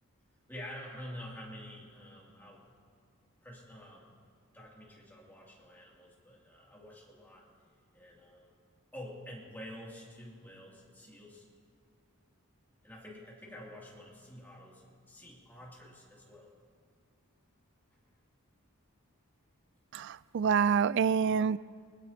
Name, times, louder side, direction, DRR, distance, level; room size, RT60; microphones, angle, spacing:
voice 1, 0.5-2.6 3.4-4.1 4.5-7.5 7.9-8.5 8.9-11.5 12.8-16.5, left 1 dB, 10° left, -5 dB, 2.8 m, -48 dB
voice 2, 19.9-21.6, right 6 dB, 55° right, 18 dB, 0.3 m, -27 dB
20.5 x 20.5 x 2.9 m, 2.1 s
head